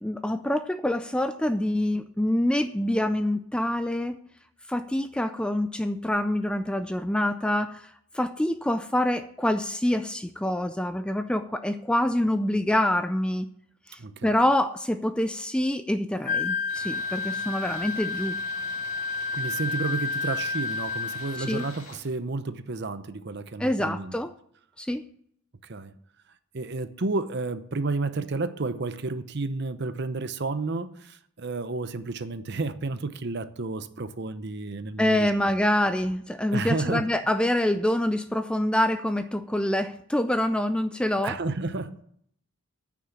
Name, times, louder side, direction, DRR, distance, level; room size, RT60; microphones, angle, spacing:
voice 1, 0.0-4.2 4.7-13.5 13.9-18.4 21.5-21.6 23.6-24.3 24.8-25.1 35.0-41.4, left 1 dB, 5° left, 0.3 m, -26 dB
voice 2, 14.0-14.3 19.3-24.1 25.6-25.9 26.5-35.5 36.5-37.0 41.2-42.0, right 3 dB, 50° right, 0.7 m, -31 dB
Wind instrument woodwind instrument, 16.2-21.7, left 4 dB, 35° left, 0.7 m, -30 dB
Tools, 16.7-22.1, left 4 dB, 70° left, 3.1 m, -46 dB
9.7 x 6.2 x 8.6 m
head